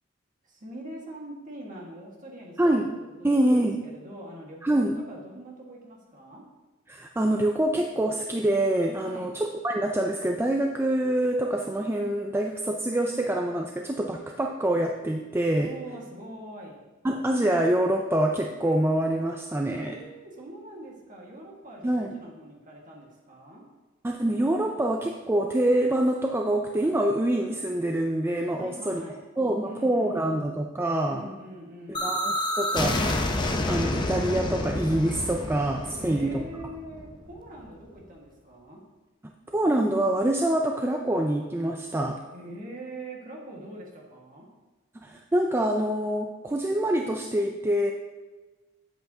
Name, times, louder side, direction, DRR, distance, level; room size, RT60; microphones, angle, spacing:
voice 1, 0.4-2.9 3.2-6.4 9.0-9.4 15.5-16.8 19.7-23.6 28.5-29.2 29.6-30.3 31.0-32.2 36.0-38.8 42.3-44.5, right 1 dB, 40° right, -2 dB, 1.6 m, -43 dB
voice 2, 2.6-2.9 3.2-3.8 4.6-5.0 6.9-15.7 17.0-19.9 21.8-22.1 24.0-29.0 29.4-31.3 31.9-33.1 33.7-36.4 39.5-42.2 45.0-47.9, right 1 dB, 10° right, 2 dB, 0.3 m, -25 dB
sound 1, 31.9-37.7, left 1 dB, 20° left, 0.6 m, -29 dB
9.1 x 7.8 x 2.8 m, 1.3 s
head